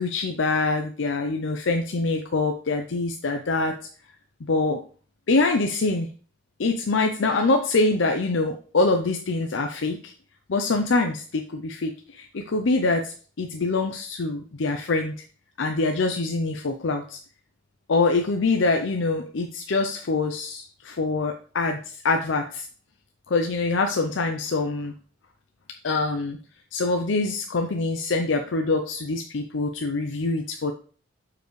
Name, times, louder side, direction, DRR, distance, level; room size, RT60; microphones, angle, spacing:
voice 1, 0.0-3.8 4.5-4.8 5.3-6.1 6.6-10.1 10.5-15.1 15.6-17.2 17.9-22.7 23.3-24.9 25.8-26.4 26.7-30.7, left 3 dB, 70° left, 5 dB, 0.6 m, -24 dB
6.8 x 4.8 x 3.1 m, 0.41 s
head